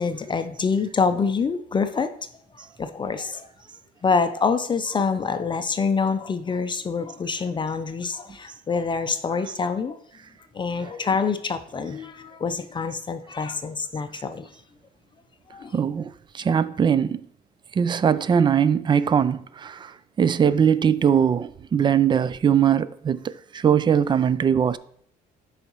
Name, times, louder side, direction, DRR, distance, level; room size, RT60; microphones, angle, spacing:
voice 1, 0.0-2.1 2.5-3.5 4.0-10.0 10.5-14.5 15.5-15.8, left 5 dB, 30° left, 0.5 m, -26 dB
voice 2, 15.7-17.2 17.7-24.8, right 8 dB, 25° right, 0.4 m, -21 dB
11.5 x 4.9 x 3.0 m
cardioid pair, 110°, 17 cm